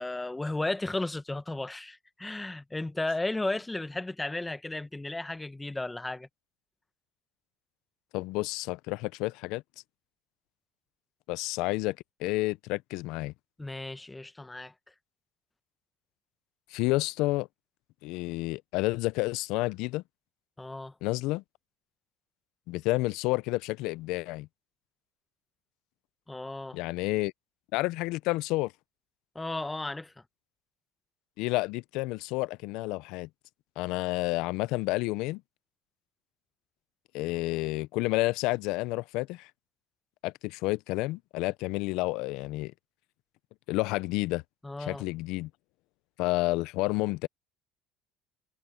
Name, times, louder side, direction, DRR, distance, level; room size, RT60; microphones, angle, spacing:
voice 1, 0.0-6.3 13.6-14.7 20.6-20.9 26.3-26.8 29.3-30.1 44.6-45.0, left 2 dB, 10° left, 1.4 m, -34 dB
voice 2, 8.1-9.6 11.3-13.3 16.7-17.5 18.0-20.0 21.0-21.4 22.7-24.5 26.7-27.3 27.7-28.7 31.4-33.3 33.8-35.4 37.1-39.5 40.2-42.7 43.7-44.4 44.8-45.5 46.2-47.3, left 21 dB, 75° left, 0.6 m, -30 dB
supercardioid pair, 100°, 0 cm